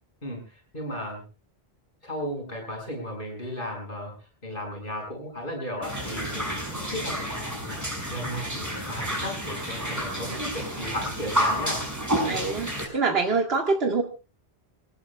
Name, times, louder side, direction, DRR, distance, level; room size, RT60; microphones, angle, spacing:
voice 1, 0.2-1.2 2.0-4.1 4.4-7.8 8.1-11.8 12.2-12.4, equal, 55° left, 2 dB, 6.3 m, -35 dB
sound 1, 5.8-12.8, equal, 15° right, 6.2 m, -30 dB
voice 2, 12.3-14.0, right 4 dB, 70° right, 2 dB, 2.2 m, -25 dB
27.5 x 19.5 x 2.3 m, 0.33 s
omnidirectional pair, 1.1 m